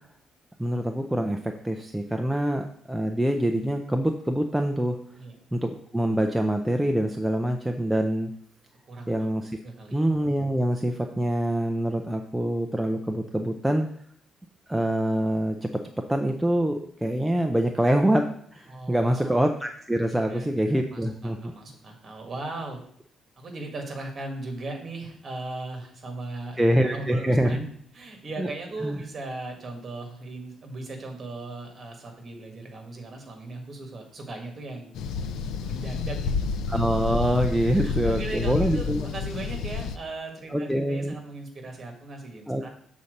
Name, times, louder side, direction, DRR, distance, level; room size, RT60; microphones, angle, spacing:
voice 1, 0.6-5.0 5.5-8.3 9.1-9.5 9.9-13.9 14.7-15.7 16.1-18.3 18.5-21.4 26.6-27.6 28.4-28.5 28.8-29.0 36.7-39.1 40.5-41.1 42.5-42.7, right 1 dB, 5° right, 4 dB, 0.4 m, -25 dB
voice 2, 8.9-9.3 9.6-10.1 18.7-19.4 20.2-22.8 23.4-27.7 27.9-34.9 35.5-36.5 37.6-42.7, right 2 dB, 30° right, 3 dB, 1.7 m, -38 dB
sound 1, 35.0-40.0, left 5 dB, 85° left, 0.6 m, -29 dB
7.2 x 4.1 x 6.5 m, 0.64 s
cardioid pair, 170°, 0 cm